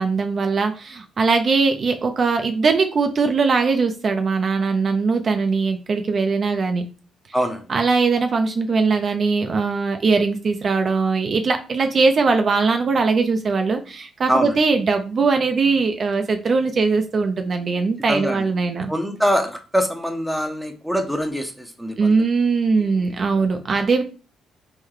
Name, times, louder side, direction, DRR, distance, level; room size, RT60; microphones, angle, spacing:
voice 1, 0.0-6.8 7.7-18.9 22.0-24.0, right 4 dB, 45° right, 6 dB, 0.4 m, -20 dB
voice 2, 7.3-7.7 14.3-14.5 18.1-18.4 18.9-22.2 23.0-23.5, equal, ahead, 5 dB, 0.6 m, -24 dB
3.1 x 2.1 x 3.6 m, 0.35 s
cardioid pair, 90°, 0 cm